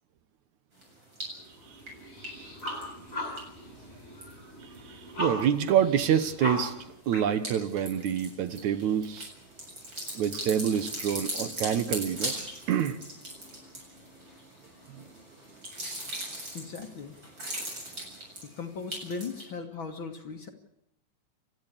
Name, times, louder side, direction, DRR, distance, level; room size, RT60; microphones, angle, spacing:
sound 1, 0.8-1.5 1.8-4.8 5.1-5.7 6.1-19.4, right 1 dB, 35° right, 8.2 m, -39 dB
sound 2, 1.3-6.9, left 1 dB, 25° left, 7.0 m, -38 dB
voice 1, 4.6-6.7 7.1-9.3 10.1-12.4 12.7-13.0, right 9 dB, 70° right, 11 dB, 2.4 m, -27 dB
voice 2, 16.5-17.2 18.4-20.5, left 5 dB, 45° left, 4 dB, 1.9 m, -38 dB
30.0 x 13.5 x 8.4 m, 0.81 s
omnidirectional pair, 3.7 m